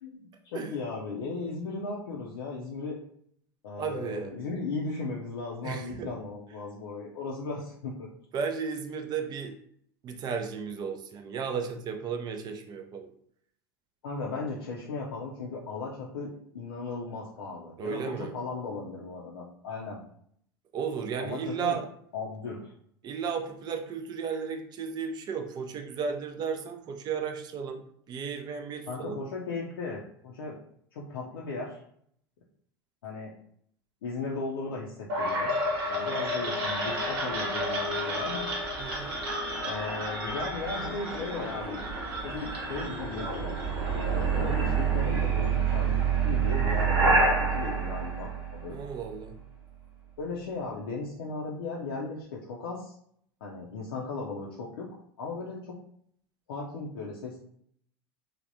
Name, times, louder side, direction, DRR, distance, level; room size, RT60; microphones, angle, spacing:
voice 1, 0.0-3.0 3.6-8.1 14.0-20.0 21.2-21.8 22.1-22.7 28.9-30.6 30.9-31.8 33.0-33.3 34.0-35.5 35.9-38.5 39.6-41.8 42.2-47.1 47.5-48.8 50.2-53.0 53.4-54.9 55.2-55.7 56.5-57.4, left 3 dB, 65° left, -4 dB, 0.6 m, -36 dB
voice 2, 3.8-4.3 5.6-6.1 8.3-9.5 10.0-13.1 17.8-18.3 20.7-21.9 23.0-27.8 28.1-29.2 38.8-39.2 48.7-49.4, right 6 dB, 30° right, 4 dB, 0.5 m, -34 dB
sound 1, 35.1-49.0, right 3 dB, 65° right, 1.1 m, -28 dB
3.3 x 2.3 x 2.7 m, 0.67 s
figure-of-eight pair, 80°, 13 cm